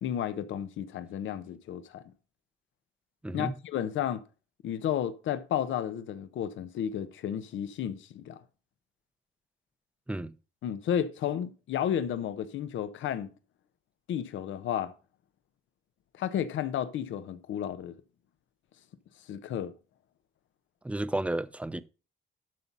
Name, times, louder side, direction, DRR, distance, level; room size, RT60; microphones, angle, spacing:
voice 1, 0.0-2.0 3.3-4.2 4.6-8.4 10.6-13.3 14.1-14.9 16.1-18.0 19.3-19.7, left 9 dB, 75° left, 1.0 m, -32 dB
voice 2, 3.2-3.5 10.1-10.3 20.8-21.8, right 1 dB, 5° right, 0.7 m, -32 dB
12.0 x 4.2 x 5.4 m
cardioid pair, 90°, 20 cm